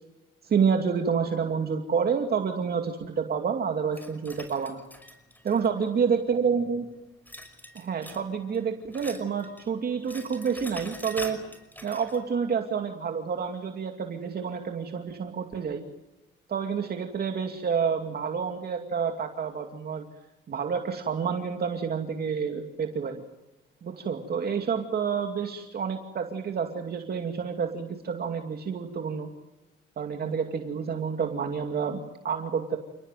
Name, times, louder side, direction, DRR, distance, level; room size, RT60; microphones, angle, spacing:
voice 1, 0.4-4.8 5.4-6.9 7.7-11.4 11.8-15.8 16.5-20.1 20.5-23.2 23.8-29.3 30.0-32.8, right 6 dB, 50° right, 4 dB, 2.6 m, -29 dB
sound 1, 3.9-6.1 7.3-8.3 8.5-9.7 9.9-12.2, left 1 dB, 10° left, 5.7 m, -44 dB
30.0 x 19.0 x 9.2 m, 1.0 s
cardioid pair, 90°, 20 cm